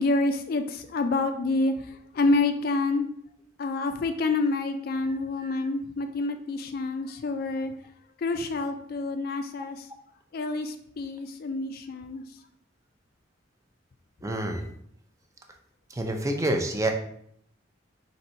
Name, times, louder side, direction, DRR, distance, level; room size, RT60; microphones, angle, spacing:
voice 1, 0.0-3.1 3.6-7.7 8.2-9.9 10.3-12.2, left 3 dB, 50° left, 7 dB, 0.3 m, -28 dB
voice 2, 5.0-5.6 14.2-14.6 15.9-16.9, right 1 dB, 15° right, 4 dB, 0.4 m, -28 dB
3.9 x 2.7 x 4.3 m, 0.69 s
head